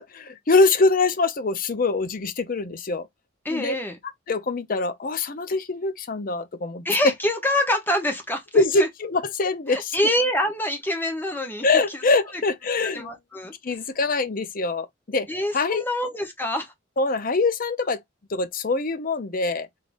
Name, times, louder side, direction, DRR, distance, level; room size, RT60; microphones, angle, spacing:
voice 1, 0.0-3.1 3.5-3.8 4.3-6.8 8.5-9.9 11.6-13.1 13.6-15.3 15.5-15.8 17.0-18.0 18.3-19.7, left 3 dB, 45° left, 0.6 m, -23 dB
voice 2, 3.4-4.0 6.8-8.9 9.7-12.0 12.9-13.5 15.3-16.7, left 1 dB, 10° left, 1.0 m, -26 dB
3.8 x 3.4 x 2.6 m
head